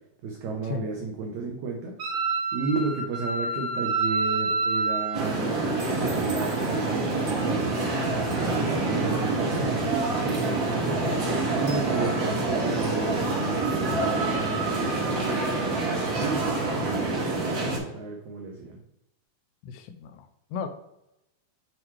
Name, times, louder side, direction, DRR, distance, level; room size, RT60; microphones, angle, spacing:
voice 1, 0.2-2.0 2.5-7.8 8.4-11.2 11.6-18.8, right 3 dB, 90° right, 1 dB, 1.6 m, -33 dB
Wind instrument woodwind instrument, 2.0-5.2, right 3 dB, 45° right, 1.5 m, -27 dB
sound 1, 5.1-17.8, right 3 dB, 65° right, 1.1 m, -26 dB
voice 2, 19.6-20.7, left 6 dB, 80° left, 8 dB, 2.3 m, -35 dB
7.6 x 3.2 x 4.4 m, 0.86 s
omnidirectional pair, 4.4 m